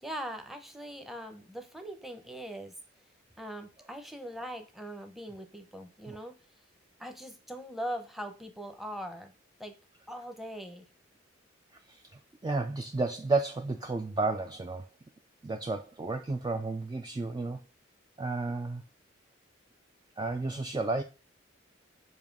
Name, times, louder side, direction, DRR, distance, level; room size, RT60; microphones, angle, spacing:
voice 1, 0.0-2.7 3.4-6.3 7.0-9.3 9.6-9.7 10.1-10.9, equal, ahead, 0.8 m, -41 dB
voice 2, 11.9-14.9 15.4-17.6 18.2-18.8 20.2-21.0, right 3 dB, 20° right, 0.3 m, -32 dB
7.2 x 2.7 x 5.2 m
head